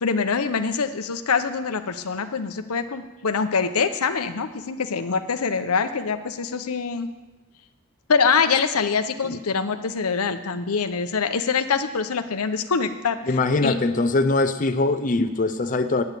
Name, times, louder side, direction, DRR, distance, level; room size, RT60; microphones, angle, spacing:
voice 1, 0.0-7.1 8.1-13.2 13.6-13.8, left 5 dB, 90° left, 9 dB, 0.8 m, -24 dB
voice 2, 13.3-16.0, left 2 dB, 35° left, 8 dB, 0.6 m, -22 dB
9.6 x 6.9 x 9.0 m, 1.1 s
head